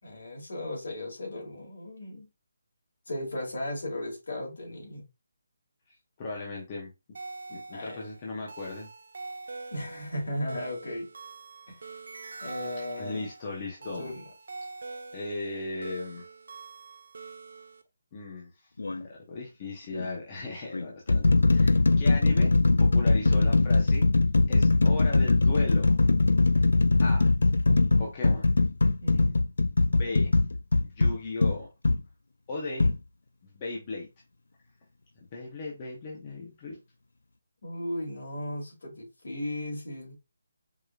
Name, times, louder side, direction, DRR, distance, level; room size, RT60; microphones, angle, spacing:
voice 1, 0.0-2.3 3.1-5.0 7.7-8.0 9.7-11.1 11.7-11.9 12.4-13.3 13.8-14.2 27.7-27.9 29.0-29.3 37.6-40.1, left 1 dB, 65° left, 2.4 m, -36 dB
voice 2, 6.2-6.9 7.5-8.9 13.0-14.1 15.1-16.3 18.1-18.5 18.9-22.5 22.8-24.0 24.5-26.0 27.0-27.3 28.0-28.5 29.9-30.3 30.8-31.7 32.5-32.9 33.4-34.1 35.3-36.8, left 3 dB, 20° left, 0.8 m, -37 dB
sound 1, 7.1-17.8, right 3 dB, 55° right, 0.5 m, -44 dB
sound 2, 18.8-19.0 19.9-20.1 20.7-32.0 32.8-33.0, left 3 dB, 85° left, 0.4 m, -22 dB
4.8 x 2.8 x 2.4 m
hypercardioid pair, 175°, 0 cm